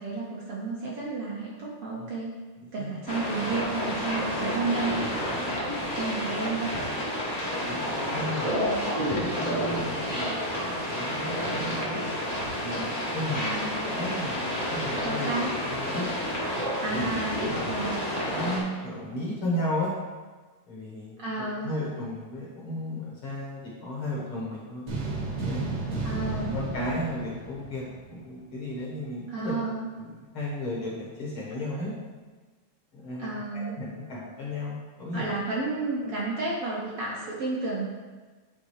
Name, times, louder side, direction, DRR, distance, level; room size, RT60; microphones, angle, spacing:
voice 1, 0.0-2.3 2.7-4.9 5.9-6.8 8.5-8.9 13.4-13.9 15.0-15.5 16.8-18.0 21.2-21.7 26.0-26.6 29.3-29.9 33.2-33.8 35.1-37.9, right 3 dB, 65° right, -5 dB, 1.5 m, -32 dB
voice 2, 2.6-2.9 5.3-5.6 7.6-8.7 9.0-11.9 12.5-15.3 15.7-16.1 16.9-17.1 18.3-19.9 20.7-21.3 21.5-24.8 25.4-26.2 26.5-29.5 29.9-31.9 32.9-35.3, left 1 dB, 55° left, -5 dB, 1.8 m, -34 dB
sound 1, 3.1-18.6, equal, 30° left, 0.7 m, -30 dB
sound 2, 24.9-28.3, right 3 dB, 45° right, 1.5 m, -33 dB
9.2 x 3.7 x 4.7 m, 1.3 s
omnidirectional pair, 3.6 m